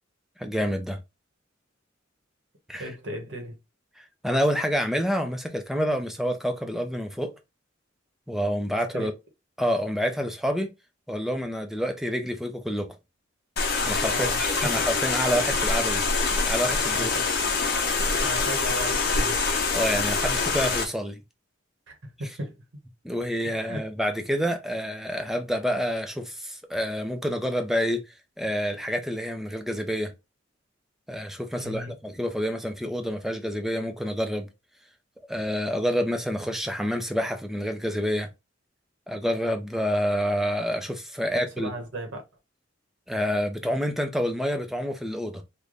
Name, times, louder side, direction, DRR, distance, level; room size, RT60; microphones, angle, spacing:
voice 1, 0.4-1.0 2.7-2.8 4.0-7.4 8.3-9.1 9.6-10.7 11.1-13.0 13.9-16.1 16.5-17.1 19.7-21.2 23.0-28.1 28.4-30.1 31.1-34.5 35.3-38.3 39.1-41.7 43.1-45.4, equal, ahead, 0.5 m, -28 dB
voice 2, 2.8-3.6 8.9-9.1 14.1-14.8 16.9-17.3 18.2-19.5 21.9-22.6 23.4-23.9 31.5-31.9 41.2-42.2, right 1 dB, 70° right, 1.1 m, -36 dB
sound 1, 13.6-20.8, left 4 dB, 55° left, 0.9 m, -25 dB
3.3 x 2.2 x 3.8 m
head